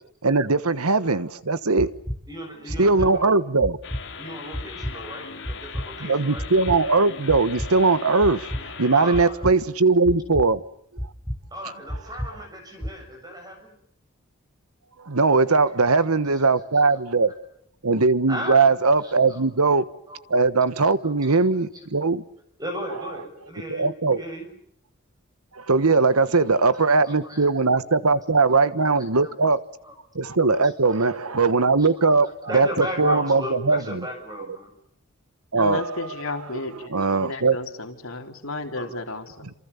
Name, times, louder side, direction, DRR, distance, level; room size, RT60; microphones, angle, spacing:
voice 1, 0.2-1.9 2.8-3.8 6.0-8.5 8.8-10.6 15.1-17.3 17.8-19.8 20.3-22.2 23.7-24.2 25.6-29.6 30.1-32.3 32.5-33.4 33.7-33.8 35.5-36.1 36.9-37.6, right 3 dB, 85° right, 1.3 m, -20 dB
sound 1, 1.8-2.2 2.7-3.1 3.6-4.0 4.5-4.9 5.4-5.9 6.4-6.8 7.3-7.7 8.2-8.6 9.1-9.5 10.0-10.5 11.0-11.4 11.9-12.3 12.8-12.9, equal, 5° left, 4.1 m, -30 dB
voice 2, 2.3-3.4 4.2-6.5 8.9-9.5 11.5-13.8 16.0-16.5 16.9-17.4 18.3-18.6 19.0-19.4 20.0-20.3 20.8-21.9 22.6-24.5 26.3-26.4 26.7-27.5 27.8-28.2 28.5-29.9 30.6-31.5 31.8-34.7 38.7-38.9, equal, 15° right, 7.1 m, -37 dB
sound 2, 3.8-9.3, left 6 dB, 55° left, 3.2 m, -39 dB
voice 3, 35.6-36.9 37.2-39.5, left 2 dB, 70° left, 4.0 m, -33 dB
29.0 x 27.5 x 7.1 m
head